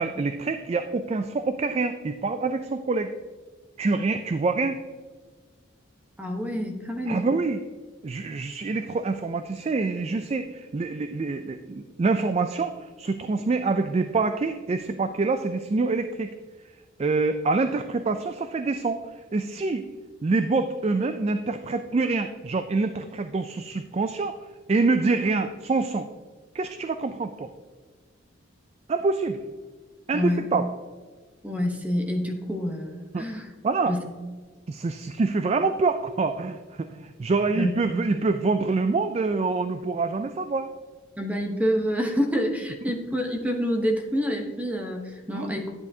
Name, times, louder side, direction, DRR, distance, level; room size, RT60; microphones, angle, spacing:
voice 1, 0.0-3.1 3.8-4.8 7.1-7.6 8.0-16.3 17.0-19.0 19.3-19.8 20.2-24.4 24.7-26.1 26.5-27.5 28.9-29.4 30.1-30.7 33.1-33.3 33.6-34.0 34.7-40.7 45.3-45.6, right 3 dB, 30° right, 9 dB, 0.3 m, -26 dB
voice 2, 6.2-7.3 30.1-30.4 31.4-33.5 33.9-34.0 37.5-37.7 41.2-45.7, equal, 5° right, 3 dB, 0.9 m, -27 dB
10.5 x 9.4 x 2.8 m, 1.4 s
head